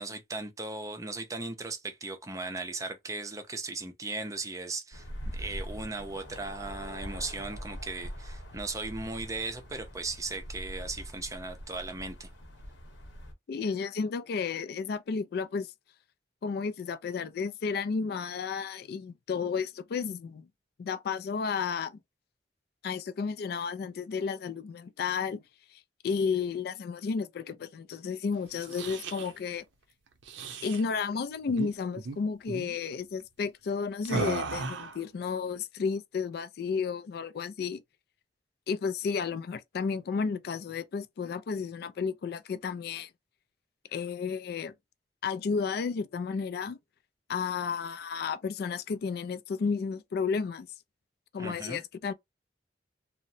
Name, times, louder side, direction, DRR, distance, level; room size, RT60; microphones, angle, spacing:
voice 1, 0.0-5.1 5.3-12.3 51.4-51.8, right 3 dB, 20° right, 0.5 m, -37 dB
sound 1, 4.9-13.3, equal, 80° left, 0.9 m, -42 dB
voice 2, 13.5-15.7 16.4-20.5 20.8-21.9 22.8-25.4 25.7-29.6 30.6-37.8 38.7-43.1 43.9-44.7 45.2-46.8 47.3-50.7 51.3-52.1, left 5 dB, 55° left, 0.3 m, -32 dB
sound 2, 28.5-29.3 30.2-30.8 31.5-31.7 32.0-32.2 32.5-32.7 34.1-35.0, right 3 dB, 90° right, 0.6 m, -35 dB
2.8 x 2.0 x 2.6 m
head